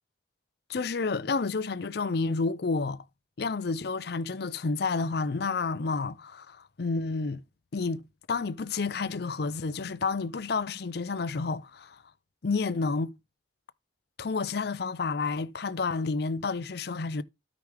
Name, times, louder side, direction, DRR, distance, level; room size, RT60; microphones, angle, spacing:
voice 1, 0.7-3.0 3.4-7.4 7.7-8.0 8.3-12.0 12.4-13.1 14.2-17.2, left 4 dB, 55° left, 0.5 m, -30 dB
13.0 x 5.0 x 3.4 m
head